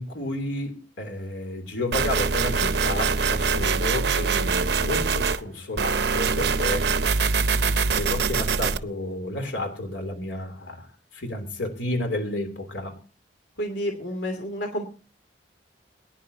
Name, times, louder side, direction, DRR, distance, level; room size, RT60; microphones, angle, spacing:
voice 1, 0.0-6.9 7.9-13.0, left 2 dB, 85° left, 5 dB, 3.2 m, -31 dB
sound 1, 1.9-5.4 5.8-8.8, right 5 dB, 65° right, 0.7 m, -23 dB
voice 2, 13.6-14.8, equal, 70° left, 4 dB, 2.8 m, -30 dB
22.5 x 10.5 x 2.8 m, 0.33 s
head